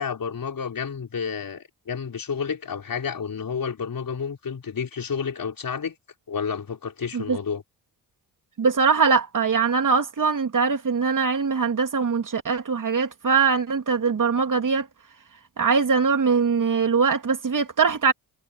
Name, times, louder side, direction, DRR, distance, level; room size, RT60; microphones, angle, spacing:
voice 1, 0.0-5.9 6.3-7.6, left 6 dB, 50° left, 4.6 m, -30 dB
voice 2, 8.6-14.9 15.6-18.1, right 5 dB, 45° right, 2.9 m, -22 dB
supercardioid pair, 50°, 42 cm